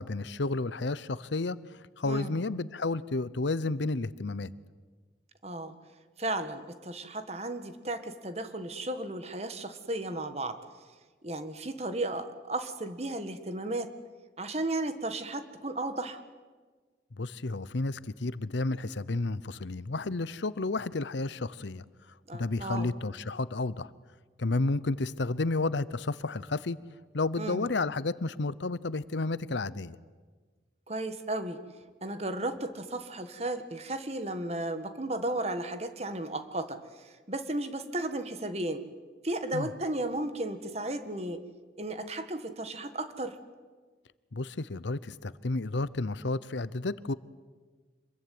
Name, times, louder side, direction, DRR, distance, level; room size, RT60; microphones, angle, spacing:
voice 1, 0.0-1.6 2.0-4.5 17.2-21.8 22.3-23.9 24.4-26.8 27.1-30.0 39.5-39.7 44.3-47.1, left 3 dB, 75° left, 18 dB, 0.8 m, -31 dB
voice 2, 2.0-2.4 5.4-5.8 6.2-10.6 11.2-13.9 14.4-16.2 22.3-22.9 27.4-27.7 30.9-31.6 32.0-38.9 39.2-41.4 41.8-43.4, right 2 dB, 35° right, 10 dB, 1.6 m, -34 dB
26.5 x 21.5 x 9.5 m, 1.4 s
head